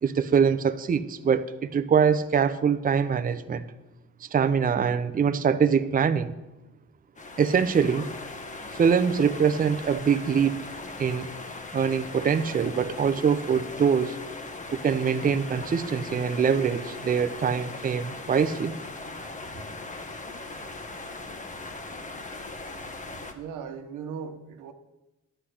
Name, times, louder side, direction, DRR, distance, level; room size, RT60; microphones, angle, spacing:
voice 1, 0.0-3.6 4.2-6.3 7.4-8.1 8.7-10.6 11.0-11.3 11.7-14.2 14.7-18.8, right 6 dB, 30° right, 0.6 m, -24 dB
sound 1, 7.2-23.3, left 3 dB, 25° left, 1.2 m, -39 dB
voice 2, 23.3-24.7, right 6 dB, 85° right, 1.1 m, -38 dB
10.0 x 8.0 x 6.4 m
cardioid pair, 90°, 30 cm